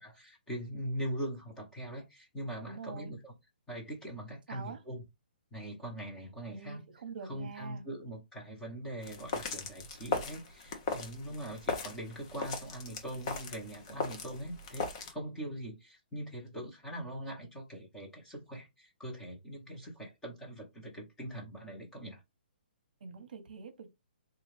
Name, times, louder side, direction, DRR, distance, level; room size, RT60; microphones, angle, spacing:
voice 1, 0.0-3.3 3.7-5.0 5.5-6.8 7.3-22.2, right 1 dB, 5° left, 1.0 m, -42 dB
voice 2, 2.7-3.1 4.5-4.8 6.5-7.8 23.0-23.9, right 5 dB, 55° right, 0.9 m, -45 dB
sound 1, 9.0-15.1, left 4 dB, 30° left, 0.8 m, -38 dB
3.8 x 2.4 x 3.2 m
hypercardioid pair, 165°, 6 cm